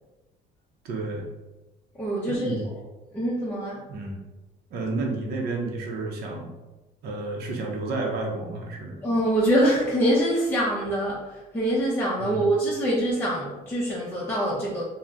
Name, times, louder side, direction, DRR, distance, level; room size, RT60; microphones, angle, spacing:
voice 1, 0.8-1.3 2.3-2.7 3.9-4.2 4.7-6.5 7.0-9.0 12.2-12.5, right 3 dB, 70° right, 0 dB, 0.6 m, -31 dB
voice 2, 1.9-2.6 3.1-3.8 9.0-14.8, right 1 dB, 10° left, -6 dB, 0.5 m, -24 dB
2.5 x 2.0 x 3.3 m, 1.1 s
cardioid pair, 110°, 17 cm